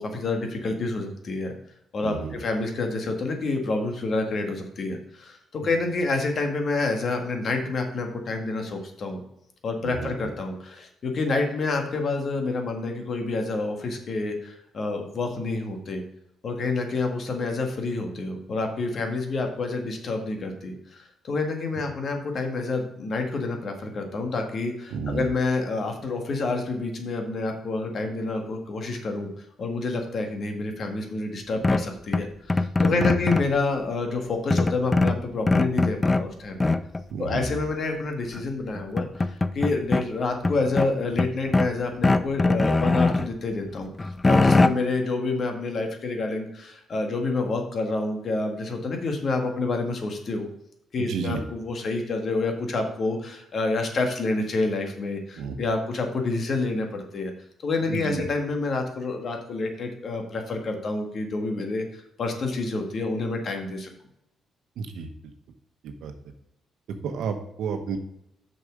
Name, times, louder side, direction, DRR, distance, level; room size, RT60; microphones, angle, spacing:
voice 1, 0.0-1.5 1.9-9.2 9.6-16.0 16.4-29.3 29.6-36.7 37.2-50.5 50.9-57.3 57.6-63.9, left 3 dB, 50° left, 4 dB, 1.7 m, -28 dB
voice 2, 2.0-2.4 9.8-10.3 24.9-25.3 32.8-33.2 37.1-37.6 51.0-51.4 55.4-55.6 57.9-58.2 64.8-65.1 65.8-66.1 67.0-68.0, right 5 dB, 80° right, 6 dB, 1.1 m, -31 dB
sound 1, 31.6-33.6 34.5-36.3 36.6-37.0 38.3-38.4 38.7-40.0 40.4-41.7 42.0-43.3 43.7-44.7, left 3 dB, 20° left, 0.4 m, -22 dB
6.5 x 6.0 x 5.1 m, 0.80 s
cardioid pair, 90°, 0 cm